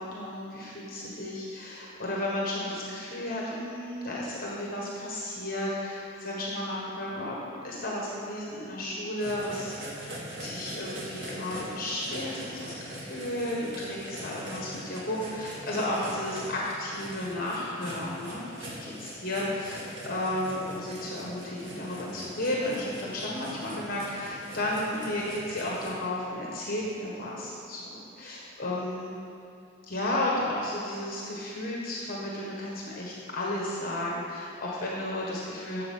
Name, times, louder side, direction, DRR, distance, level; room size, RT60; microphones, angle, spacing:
voice 1, 0.0-10.1 10.4-29.1 29.8-35.8, left 1 dB, 50° left, -4 dB, 1.5 m, -33 dB
sound 1, 9.2-25.9, right 1 dB, 80° right, 2.3 m, -42 dB
11.0 x 7.6 x 5.6 m, 2.6 s
head